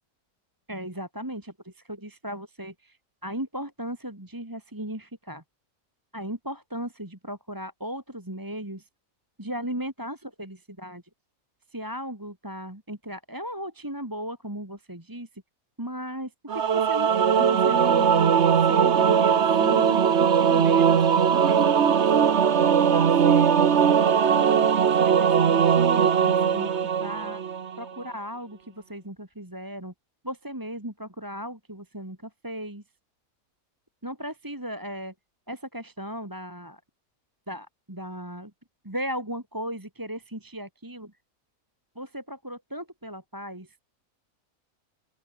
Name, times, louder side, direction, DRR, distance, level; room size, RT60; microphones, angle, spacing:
voice 1, 0.7-3.0 3.2-5.4 6.1-8.9 9.4-11.0 11.7-15.3 15.8-18.3 18.7-21.7 21.9-22.1 22.9-23.5 24.1-27.4 27.8-29.9 30.2-32.8 34.0-35.1 35.5-36.8 37.5-38.5 38.8-41.1 42.0-43.7, equal, 15° right, 2.8 m, -36 dB
Singing / Musical instrument, 16.5-27.8, right 7 dB, 50° right, 1.3 m, -20 dB
open air
omnidirectional pair, 1.5 m